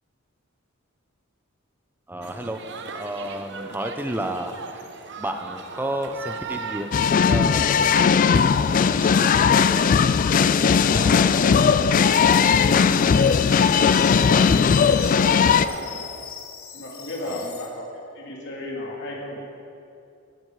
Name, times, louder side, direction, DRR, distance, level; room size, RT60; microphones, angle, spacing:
voice 1, 2.1-2.7 2.9-4.9 5.2-6.9 7.2-7.7 8.2-9.9 17.3-17.5, right 1 dB, 10° right, 6 dB, 0.7 m, -32 dB
sound 1, 2.2-7.5, right 5 dB, 60° right, 0.9 m, -38 dB
sound 2, 6.9-15.7, left 6 dB, 40° left, 0.3 m, -18 dB
voice 2, 10.8-16.1 16.7-17.8 18.1-19.5, left 1 dB, 60° left, -3 dB, 2.7 m, -34 dB
sound 3, 12.2-17.7, left 7 dB, 85° left, 1.5 m, -41 dB
16.0 x 10.5 x 4.8 m, 2.6 s
head